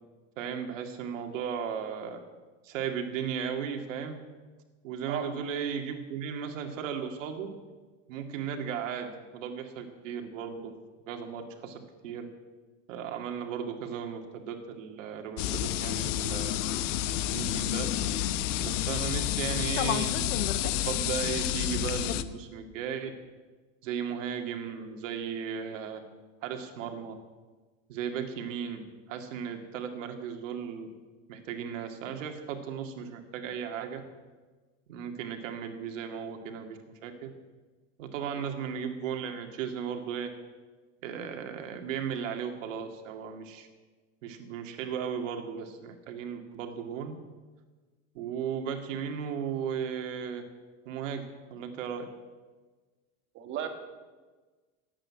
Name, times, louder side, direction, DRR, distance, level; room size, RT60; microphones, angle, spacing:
voice 1, 0.4-2.2 2.6-4.2 4.8-7.5 8.1-10.7 11.1-12.3 12.9-16.6 17.3-17.9 18.6-23.1 23.8-26.0 26.4-27.2 27.9-30.9 31.3-34.0 34.9-37.3 38.0-40.3 41.0-43.7 44.2-47.2 48.1-50.4 50.9-52.1, right 7 dB, 80° right, 5 dB, 2.2 m, -36 dB
sound 1, 15.4-22.2, left 12 dB, 70° left, 1.0 m, -29 dB
voice 2, 53.3-53.7, right 10 dB, 30° right, 6 dB, 1.9 m, -35 dB
17.5 x 8.7 x 9.6 m, 1.3 s
supercardioid pair, 170°, 38 cm